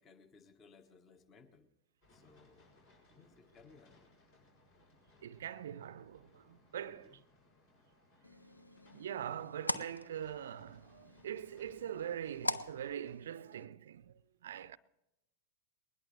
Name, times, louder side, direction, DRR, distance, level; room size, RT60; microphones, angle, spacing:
voice 1, 0.0-1.7 2.1-2.7 3.1-4.1 6.8-7.2 8.2-8.4, left 4 dB, 25° left, 1.3 m, -62 dB
sound 1, 2.0-13.2, left 2 dB, 50° left, 6.0 m, -67 dB
voice 2, 5.2-7.2 8.9-14.8, right 9 dB, 60° right, 0.5 m, -43 dB
sound 2, 8.2-13.6, left 1 dB, 85° left, 0.6 m, -43 dB
21.0 x 20.0 x 3.2 m
figure-of-eight pair, 90°, 0 cm